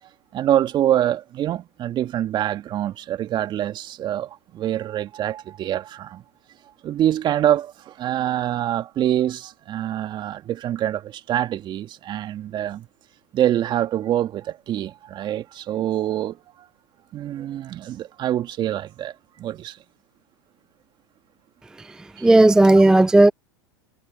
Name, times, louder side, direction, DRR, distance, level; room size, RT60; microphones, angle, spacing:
voice 1, 0.3-6.2 6.8-12.9 13.3-16.4 17.1-19.8 22.2-22.3, right 11 dB, 35° right, 2.1 m, -25 dB
voice 2, 21.8-23.3, right 2 dB, 5° right, 0.3 m, -14 dB
hypercardioid pair, 100°, 13 cm